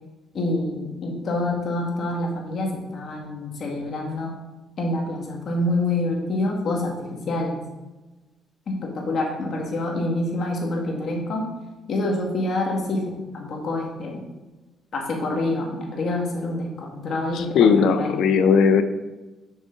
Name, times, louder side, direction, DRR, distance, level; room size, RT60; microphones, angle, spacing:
voice 1, 0.3-4.3 4.8-7.6 8.7-11.5 11.9-14.2 14.9-18.2, left 2 dB, 60° left, 0 dB, 1.9 m, -27 dB
voice 2, 17.3-18.8, left 6 dB, 80° left, 10 dB, 0.5 m, -18 dB
6.3 x 6.2 x 3.9 m, 1.1 s
cardioid pair, 90°, 0 cm